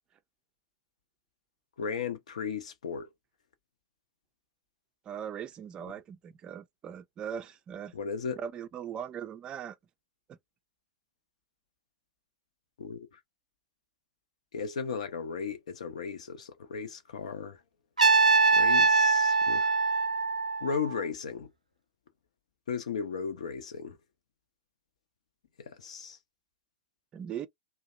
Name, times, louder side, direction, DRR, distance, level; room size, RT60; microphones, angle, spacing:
voice 1, 1.8-3.1 7.9-8.4 12.8-13.2 14.5-17.6 18.5-19.8 20.6-21.5 22.7-24.0 25.6-26.2, left 6 dB, 65° left, 0.7 m, -36 dB
voice 2, 5.1-7.9 8.4-9.8 10.3-10.4 27.1-27.5, right 8 dB, 25° right, 0.4 m, -39 dB
Trumpet, 18.0-21.0, right 4 dB, 85° right, 0.5 m, -23 dB
2.8 x 2.1 x 2.4 m
figure-of-eight pair, 100°, 4 cm